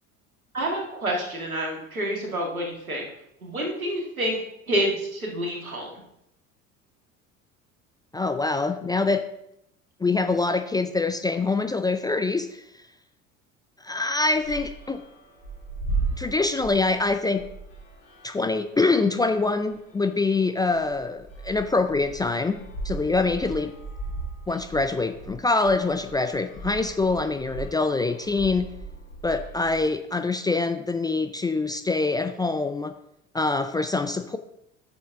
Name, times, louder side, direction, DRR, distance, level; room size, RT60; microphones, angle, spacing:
voice 1, 0.5-3.1 3.4-4.4 4.7-5.9, right 1 dB, 90° right, -1 dB, 2.0 m, -28 dB
voice 2, 8.1-9.2 10.0-12.6 13.8-15.0 16.2-17.4 18.2-23.7 24.5-28.7 29.2-32.9 33.3-34.4, left 3 dB, 10° left, 8 dB, 0.4 m, -25 dB
sound 1, 14.3-29.8, right 3 dB, 70° left, 2.7 m, -37 dB
10.0 x 6.9 x 3.6 m, 0.80 s
figure-of-eight pair, 65°, 41 cm